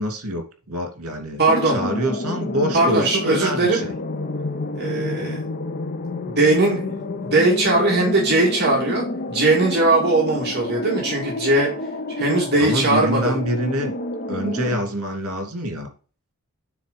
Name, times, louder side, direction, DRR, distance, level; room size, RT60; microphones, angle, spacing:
voice 1, 0.0-3.9 12.6-13.9 14.3-15.9, equal, 75° right, 4 dB, 2.9 m, -26 dB
voice 2, 1.4-1.8 2.7-3.8 4.7-5.4 6.2-11.7 12.2-13.4, right 2 dB, 50° right, -2 dB, 2.3 m, -20 dB
sound 1, 1.5-14.8, left 2 dB, 40° left, 0.7 m, -29 dB
9.3 x 3.9 x 5.3 m, 0.37 s
head